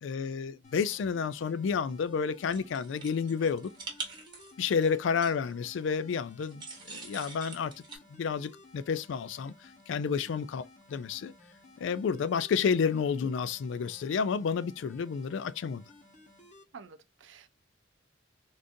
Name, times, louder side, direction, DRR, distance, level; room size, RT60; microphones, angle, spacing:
voice 1, 0.0-3.7 4.6-7.7 8.1-9.5 9.9-11.3 11.8-15.8, left 6 dB, 75° left, 0.3 m, -30 dB
sound 1, 0.6-16.6, left 2 dB, 40° left, 0.9 m, -57 dB
sound 2, 2.4-5.5 6.4-8.0, right 4 dB, 25° right, 1.1 m, -44 dB
voice 2, 16.7-17.5, right 5 dB, 75° right, 0.5 m, -51 dB
3.7 x 2.5 x 2.6 m
head